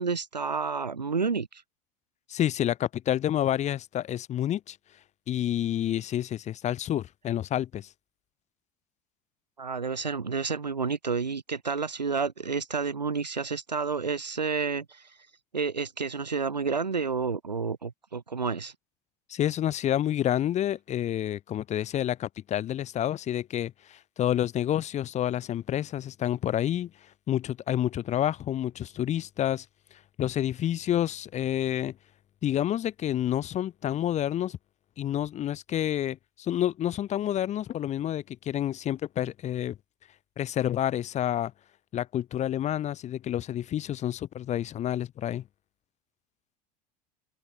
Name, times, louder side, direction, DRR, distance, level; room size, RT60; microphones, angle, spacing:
voice 1, 0.0-1.6 9.6-15.0 15.5-18.7, right 5 dB, 85° right, 2.1 m, -30 dB
voice 2, 2.3-4.8 5.3-7.9 19.3-26.9 27.3-29.6 30.2-31.9 32.4-34.6 35.0-39.8 40.4-41.5 41.9-45.4, left 11 dB, 35° left, 1.0 m, -29 dB
open air
figure-of-eight pair, 75°, 21 cm